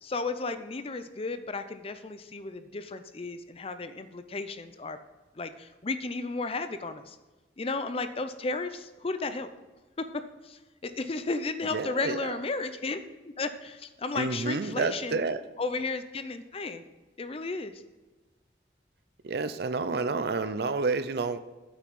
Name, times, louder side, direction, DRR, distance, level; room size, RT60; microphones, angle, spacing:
voice 1, 0.0-5.0 5.4-7.2 7.6-9.5 10.0-13.0 13.4-15.2 15.6-16.8 17.2-17.7, left 3 dB, 35° left, 10 dB, 0.5 m, -34 dB
voice 2, 11.7-12.3 14.1-15.4 19.2-21.4, right 4 dB, 60° right, 12 dB, 0.5 m, -29 dB
8.2 x 5.9 x 5.4 m, 1.2 s
head